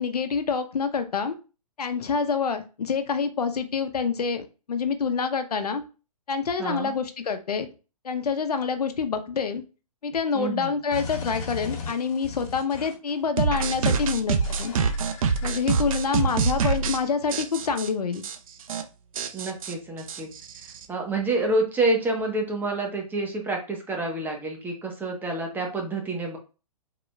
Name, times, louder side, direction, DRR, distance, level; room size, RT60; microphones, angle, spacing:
voice 1, 0.0-1.4 1.8-5.8 6.3-7.7 8.0-9.6 10.0-14.7 15.4-18.2, left 5 dB, 85° left, 9 dB, 0.8 m, -27 dB
voice 2, 6.6-6.9 10.3-10.7 16.1-16.3 19.3-20.3 20.9-26.4, right 2 dB, 10° right, 1 dB, 1.1 m, -28 dB
sound 1, 10.9-13.1 13.7-14.1 14.4-16.2, left 4 dB, 60° left, 1.7 m, -38 dB
sound 2, 13.4-17.0 17.3-17.9 18.2-18.4 18.6-18.8 19.2-20.9, right 5 dB, 65° right, 0.8 m, -25 dB
4.9 x 4.0 x 2.3 m, 0.33 s
hypercardioid pair, 135°, 19 cm